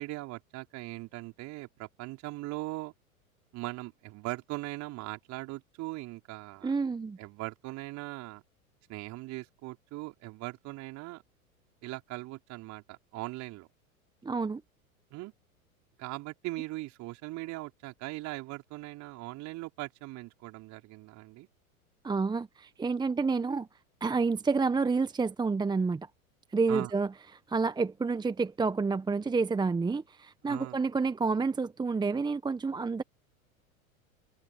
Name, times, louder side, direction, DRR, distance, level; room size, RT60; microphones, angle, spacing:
voice 1, 0.0-2.9 3.5-6.7 7.2-8.4 8.9-11.2 11.8-13.7 15.1-15.3 16.0-21.5 26.7-26.9 30.4-30.8, right 20 dB, 40° right, 5.0 m, -40 dB
voice 2, 6.6-7.2 14.2-14.6 22.0-23.7 24.0-26.1 26.5-27.1 27.5-33.0, right 4 dB, 10° right, 1.2 m, -29 dB
figure-of-eight pair, 90°, 43 cm